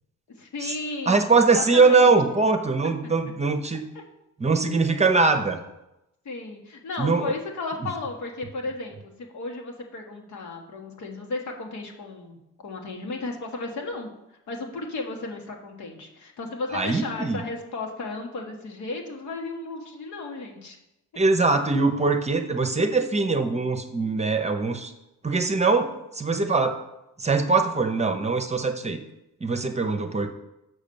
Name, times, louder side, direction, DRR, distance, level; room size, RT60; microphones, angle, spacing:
voice 1, 0.3-2.1 3.9-4.0 5.1-5.4 6.2-14.1 14.5-20.8, left 3 dB, 70° left, 1 dB, 1.6 m, -34 dB
voice 2, 1.1-3.8 4.4-5.6 7.0-7.3 16.7-17.4 21.2-24.9 25.2-26.8 27.2-29.0 29.4-30.3, right 4 dB, 20° right, 6 dB, 0.8 m, -22 dB
6.2 x 5.1 x 6.9 m, 0.92 s
cardioid pair, 90°, 30 cm